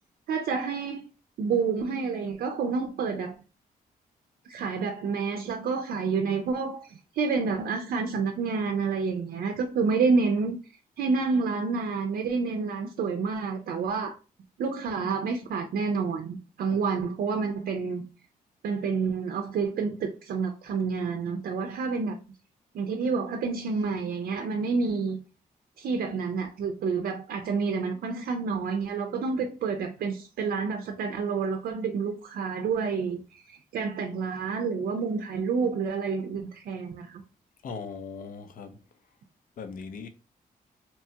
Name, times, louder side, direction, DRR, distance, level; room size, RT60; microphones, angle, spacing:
voice 1, 0.3-1.1 1.4-3.3 4.5-10.6 11.0-14.1 14.6-18.0 18.6-22.2 22.7-25.2 25.8-37.2, right 5 dB, 75° right, 0.4 m, -29 dB
voice 2, 37.6-38.8 39.6-40.1, left 5 dB, 65° left, 0.5 m, -39 dB
2.9 x 2.2 x 2.7 m
cardioid pair, 110°, 15 cm